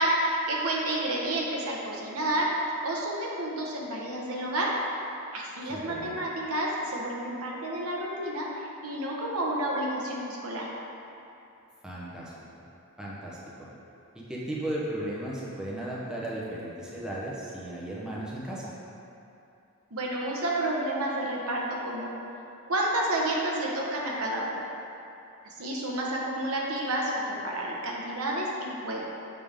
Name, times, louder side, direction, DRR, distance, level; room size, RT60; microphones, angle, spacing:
voice 1, 0.0-4.8 5.3-10.7 19.9-22.2 22.7-24.6 25.4-29.1, right 1 dB, 75° right, -3 dB, 1.0 m, -30 dB
voice 2, 5.7-6.2 11.8-12.6 13.0-13.4 14.1-18.7, right 1 dB, 5° right, -7 dB, 0.8 m, -35 dB
6.8 x 5.2 x 3.6 m, 2.8 s
head